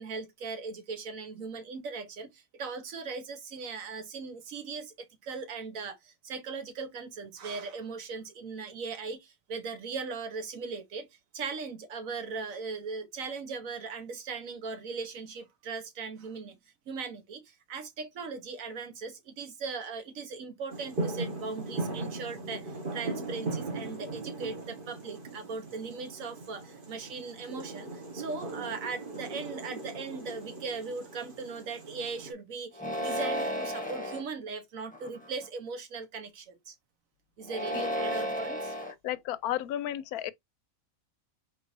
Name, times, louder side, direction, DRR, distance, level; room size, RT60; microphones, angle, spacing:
voice 1, 0.0-11.1 11.3-16.6 16.9-36.8 37.4-38.7, right 4 dB, 70° right, 1.3 m, -39 dB
sound 1, 20.7-32.3, right 2 dB, 40° right, 1.5 m, -38 dB
sound 2, 32.7-34.2 34.9-35.4 37.4-38.9, equal, 5° left, 1.0 m, -33 dB
voice 2, 39.0-40.3, left 12 dB, 90° left, 1.1 m, -33 dB
4.7 x 4.1 x 2.6 m
omnidirectional pair, 1.5 m